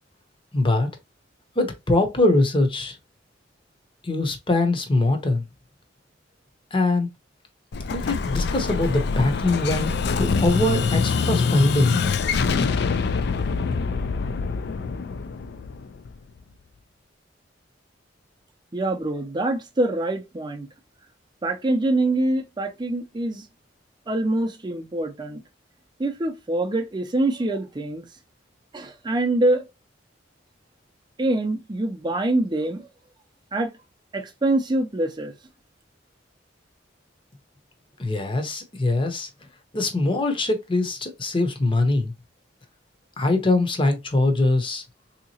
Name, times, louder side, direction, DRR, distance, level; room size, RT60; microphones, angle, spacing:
voice 1, 0.5-0.9 1.6-2.9 4.0-5.4 6.7-7.1 7.9-9.9 10.2-12.0 38.0-39.3 39.7-42.1 43.2-44.8, left 2 dB, 30° left, 0.7 m, -22 dB
Explosion, 7.7-16.4, left 5 dB, 60° left, 0.4 m, -25 dB
voice 2, 18.7-20.7 21.4-23.4 24.1-25.4 26.0-28.0 28.7-29.7 31.2-32.9 33.5-33.7 34.1-35.3, right 2 dB, 25° right, 0.5 m, -24 dB
3.6 x 2.9 x 2.8 m
head